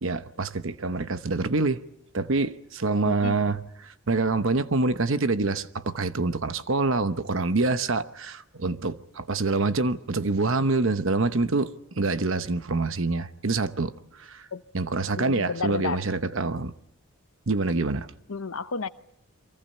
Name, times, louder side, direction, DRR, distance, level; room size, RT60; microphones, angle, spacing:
voice 1, 0.0-1.8 2.1-13.9 14.2-14.5 14.7-16.7 17.5-18.1, right 3 dB, 60° right, 0.9 m, -26 dB
voice 2, 3.0-3.4 14.5-14.6 15.2-16.0 18.3-18.9, left 4 dB, 70° left, 0.8 m, -31 dB
30.0 x 24.0 x 5.5 m
head